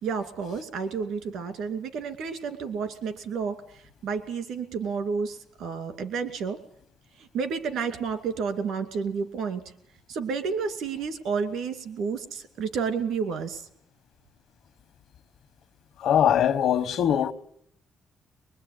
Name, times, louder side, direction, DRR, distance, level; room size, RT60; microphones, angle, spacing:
voice 1, 0.0-6.6 7.3-9.6 10.1-13.7, right 5 dB, 80° right, 2.5 m, -31 dB
voice 2, 16.0-17.3, left 9 dB, 75° left, 1.2 m, -22 dB
22.5 x 21.5 x 9.5 m
cardioid pair, 90°, 0 cm